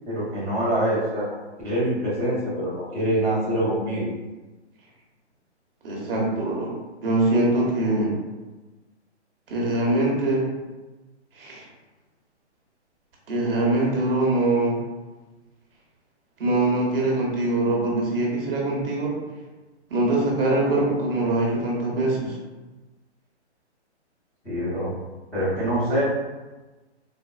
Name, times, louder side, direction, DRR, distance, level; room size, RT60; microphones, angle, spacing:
voice 1, 0.0-1.2 1.6-4.1 24.4-24.9 25.3-26.0, right 1 dB, 5° left, -14 dB, 0.7 m, -25 dB
voice 2, 5.8-6.7 7.0-8.1 9.5-10.5 11.4-11.6 13.3-14.8 16.4-19.1 19.9-22.4, right 2 dB, 55° right, -3 dB, 1.0 m, -23 dB
4.1 x 2.1 x 2.3 m, 1.2 s
hypercardioid pair, 150°, 35 cm